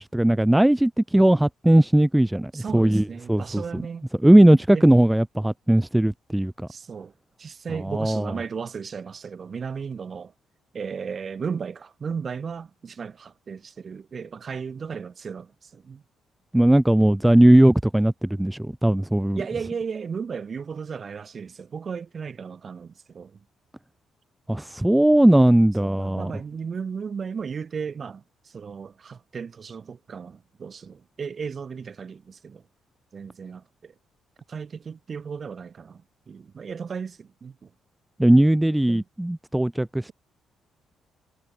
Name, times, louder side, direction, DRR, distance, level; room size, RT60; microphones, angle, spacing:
voice 1, 0.0-3.8 4.2-6.7 7.9-8.3 16.5-19.4 24.5-26.3 38.2-40.1, right 1 dB, 5° right, 0.3 m, -18 dB
voice 2, 2.5-4.1 4.3-4.9 6.7-7.1 7.4-10.3 10.7-16.0 19.3-23.4 25.8-32.6 33.1-33.9 34.5-37.7 38.9-39.0, right 6 dB, 45° right, 1.5 m, -35 dB
cardioid pair, 90°, 0 cm